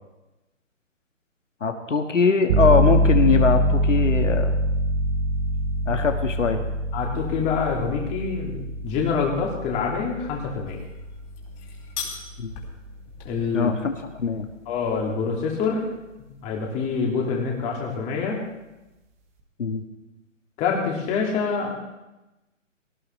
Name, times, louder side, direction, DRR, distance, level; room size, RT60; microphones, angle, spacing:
voice 1, 1.6-4.5 5.9-6.6 12.4-12.5 13.5-14.5 19.6-19.8, left 5 dB, 70° left, 5 dB, 1.8 m, -22 dB
sound 1, 2.5-13.0, equal, 10° right, 0.6 m, -24 dB
voice 2, 6.9-8.6 8.8-10.8 13.2-13.7 14.7-15.9 16.4-18.4 20.6-21.7, left 5 dB, 15° left, -1 dB, 2.5 m, -26 dB
sound 2, 10.6-15.7, left 6 dB, 35° left, 4.4 m, -41 dB
19.0 x 18.0 x 3.3 m, 1.0 s
figure-of-eight pair, 145°, 39 cm